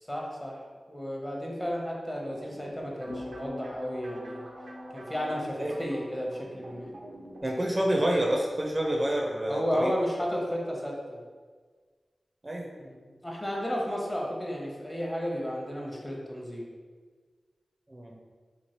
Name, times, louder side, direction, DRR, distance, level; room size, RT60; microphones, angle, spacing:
voice 1, 0.1-0.6 0.9-4.5 4.9-6.9 9.5-11.2 12.8-16.7, equal, 20° left, -2 dB, 0.7 m, -33 dB
sound 1, 2.3-7.4, right 1 dB, 90° right, 0.5 m, -46 dB
sound 2, 3.1-7.5 7.8-8.2, left 1 dB, 70° left, 0.6 m, -45 dB
voice 2, 7.4-9.9 12.4-12.7 17.9-18.2, right 1 dB, 30° right, -1 dB, 0.5 m, -28 dB
3.0 x 2.5 x 2.9 m, 1.5 s
cardioid pair, 50°, 0 cm